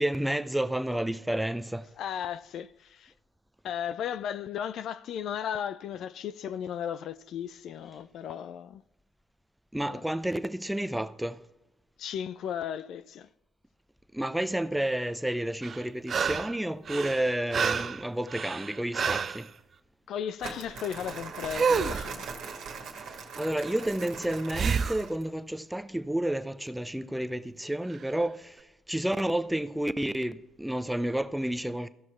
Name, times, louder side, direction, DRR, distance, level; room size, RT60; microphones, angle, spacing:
voice 1, 0.0-1.9 9.7-11.4 14.1-19.5 23.0-31.9, right 1 dB, 5° right, 0.7 m, -31 dB
voice 2, 2.0-3.1 3.6-8.8 9.8-10.0 12.0-13.3 20.1-22.3, left 9 dB, 65° left, 0.3 m, -35 dB
sound 1, 15.6-16.6 16.9-19.4 21.5-22.1 24.5-25.0 27.9-28.0, right 6 dB, 50° right, 0.5 m, -29 dB
Crumpling crinkling, 20.4-25.3, right 5 dB, 70° right, 1.7 m, -40 dB
15.0 x 6.1 x 4.3 m
hypercardioid pair, 50°, 0 cm